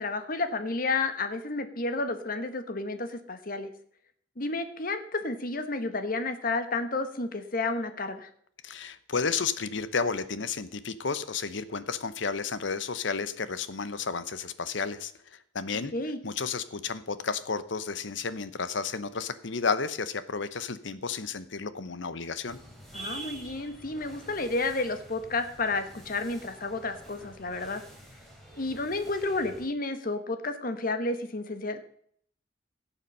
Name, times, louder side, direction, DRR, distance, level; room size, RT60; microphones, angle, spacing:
voice 1, 0.0-3.7 4.4-8.3 15.9-16.2 22.9-27.8 28.6-31.8, left 3 dB, 50° left, 9 dB, 1.2 m, -31 dB
voice 2, 8.6-15.9 16.2-22.6, left 5 dB, 80° left, 14 dB, 0.8 m, -32 dB
sound 1, 22.5-29.7, right 2 dB, ahead, 3.4 m, -47 dB
17.0 x 7.2 x 5.4 m, 0.63 s
head